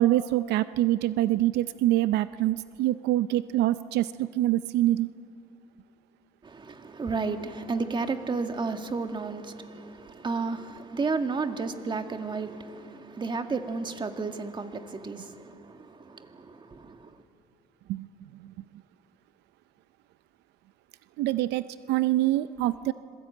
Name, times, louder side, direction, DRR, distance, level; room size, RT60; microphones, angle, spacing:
voice 1, 0.0-5.1 17.9-18.1 21.2-22.9, right 15 dB, 85° right, 0.6 m, -25 dB
voice 2, 6.4-17.1, right 4 dB, 30° right, 1.9 m, -32 dB
26.0 x 21.5 x 9.2 m
cardioid pair, 110°, 17 cm